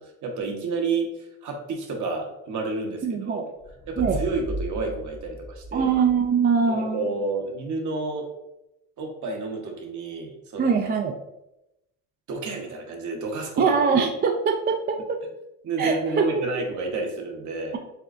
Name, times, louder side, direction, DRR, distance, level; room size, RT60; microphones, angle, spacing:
voice 1, 0.0-3.5 3.9-5.9 6.7-8.3 9.0-10.8 12.3-13.8 15.6-17.8, right 3 dB, 50° right, 2 dB, 1.0 m, -30 dB
voice 2, 3.0-3.4 4.0-4.2 5.7-7.0 10.6-11.1 13.6-15.0 15.8-16.2, right 6 dB, 25° right, 4 dB, 0.3 m, -22 dB
sound 1, 3.6-6.4, right 1 dB, 15° left, 0.6 m, -36 dB
6.6 x 2.3 x 2.5 m, 0.88 s
supercardioid pair, 95°, 39 cm